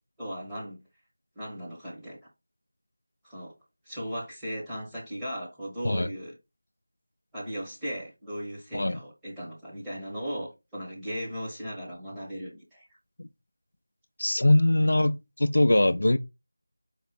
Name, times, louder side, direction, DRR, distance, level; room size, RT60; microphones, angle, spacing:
voice 1, 0.2-0.8 1.4-2.2 3.2-3.5 3.8-6.3 7.3-12.9, equal, 5° right, 1.1 m, -37 dB
voice 2, 14.2-16.2, left 1 dB, 60° left, 0.3 m, -22 dB
4.7 x 2.4 x 4.3 m
figure-of-eight pair, 170°, 0 cm